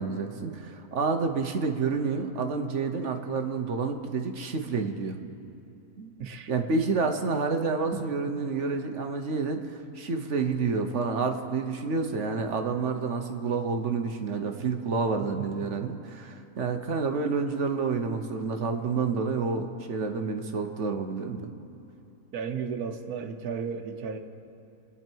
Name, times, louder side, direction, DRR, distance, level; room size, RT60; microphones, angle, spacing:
voice 1, 0.0-5.2 6.0-6.1 6.5-21.5, right 4 dB, 55° right, 5 dB, 1.2 m, -29 dB
voice 2, 6.2-6.5 7.9-8.0 8.3-8.4 15.3-16.0 22.3-24.2, right 6 dB, 85° right, 6 dB, 1.5 m, -35 dB
28.0 x 9.8 x 4.6 m, 2.9 s
omnidirectional pair, 1.6 m